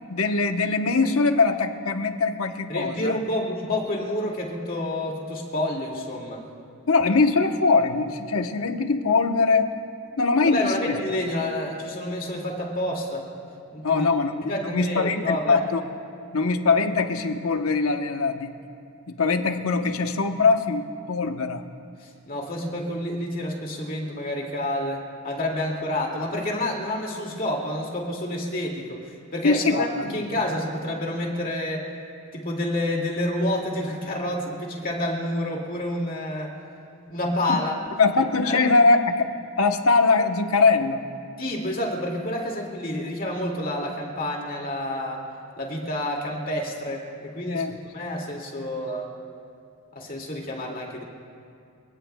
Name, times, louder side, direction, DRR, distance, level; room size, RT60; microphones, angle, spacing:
voice 1, 0.1-3.2 6.9-9.7 10.2-11.0 13.8-15.8 16.3-18.5 19.1-21.6 29.4-30.2 37.5-37.6 38.0-39.3 39.6-41.0 47.5-47.8, left 4 dB, 85° left, 6 dB, 0.9 m, -22 dB
voice 2, 2.7-6.4 10.5-13.3 13.7-14.1 14.4-15.6 22.0-31.9 32.3-36.5 37.1-37.8 38.4-38.7 41.4-45.2 45.6-49.1 49.9-51.0, left 1 dB, 40° left, 0 dB, 2.2 m, -29 dB
28.5 x 18.0 x 2.2 m, 2.4 s
head